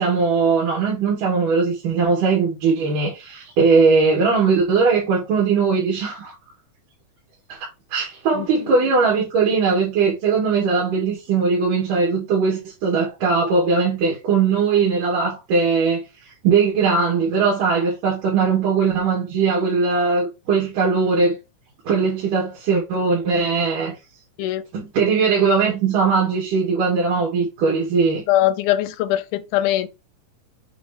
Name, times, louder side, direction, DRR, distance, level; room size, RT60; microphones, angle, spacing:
voice 1, 0.0-6.3 7.5-7.6 7.9-16.0 16.4-21.4 21.9-23.9 24.7-28.2, right 5 dB, 80° right, 3.9 m, -19 dB
voice 2, 28.3-29.9, left 13 dB, 80° left, 2.2 m, -21 dB
8.2 x 2.9 x 5.0 m
omnidirectional pair, 3.7 m